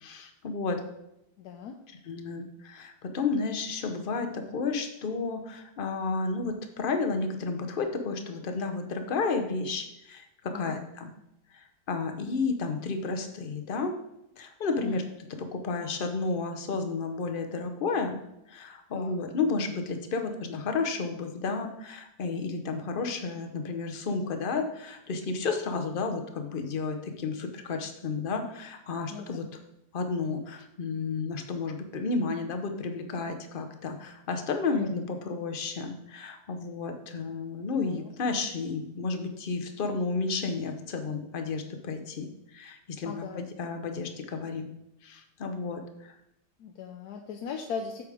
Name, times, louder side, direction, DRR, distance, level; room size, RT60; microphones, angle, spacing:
voice 1, 0.0-0.8 2.1-11.1 11.5-13.9 14.4-15.0 15.5-18.2 18.5-29.5 29.9-44.7 45.0-46.2, left 4 dB, 45° left, 5 dB, 0.7 m, -32 dB
voice 2, 1.4-1.8 10.5-10.8 14.8-15.0 18.9-19.1 29.1-29.3 34.7-34.9 37.7-38.3 43.0-43.4 46.6-48.0, left 6 dB, 70° left, 3 dB, 1.1 m, -38 dB
8.1 x 4.9 x 4.9 m, 0.85 s
omnidirectional pair, 1.8 m